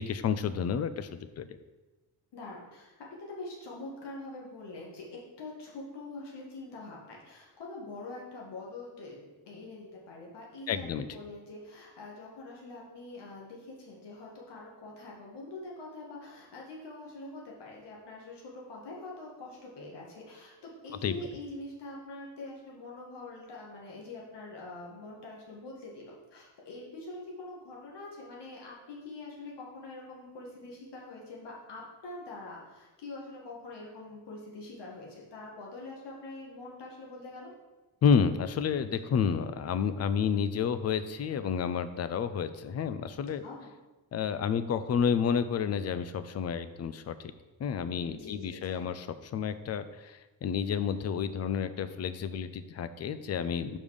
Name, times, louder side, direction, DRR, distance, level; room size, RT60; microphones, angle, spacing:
voice 1, 0.0-1.5 10.7-11.2 21.0-21.2 38.0-43.4 44.1-47.3 47.6-49.1 49.3-53.8, left 7 dB, 40° left, 12 dB, 0.4 m, -30 dB
voice 2, 2.3-2.9 3.2-37.5 43.4-43.7 48.1-48.9, left 2 dB, 70° left, -3 dB, 1.9 m, -44 dB
5.3 x 5.2 x 6.4 m, 1.1 s
wide cardioid pair, 175°, 43 cm